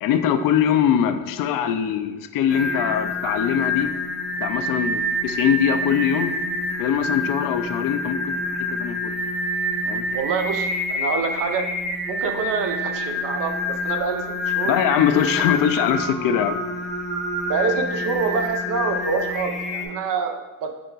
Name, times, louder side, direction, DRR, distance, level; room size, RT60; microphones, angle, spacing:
voice 1, 0.0-3.9 4.4-6.3 6.8-9.1 9.9-10.0 14.6-16.6, left 9 dB, 65° left, 8 dB, 0.5 m, -22 dB
Singing, 2.5-19.9, left 1 dB, ahead, 0.9 m, -27 dB
voice 2, 10.1-11.7 12.1-14.7 15.5-15.6 17.5-20.7, right 5 dB, 65° right, 5 dB, 0.7 m, -26 dB
5.6 x 2.2 x 3.9 m, 1.1 s
supercardioid pair, 60°, 35 cm